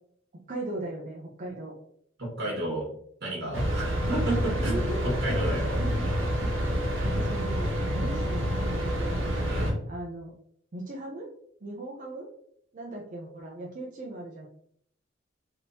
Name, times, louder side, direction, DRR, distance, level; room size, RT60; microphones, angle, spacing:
voice 1, 0.5-1.8 4.6-5.1 5.5-6.1 6.4-6.5 7.0-9.2 9.9-10.3 10.7-11.3 11.6-12.3 12.7-14.5, right 1 dB, 40° right, -2 dB, 0.5 m, -38 dB
voice 2, 2.2-2.8 3.2-5.8 6.0-6.3 9.5-9.8, right 2 dB, 55° right, -4 dB, 1.4 m, -32 dB
sound 1, 3.5-9.7, equal, 70° right, 1.0 m, -28 dB
3.5 x 2.9 x 2.7 m, 0.68 s
head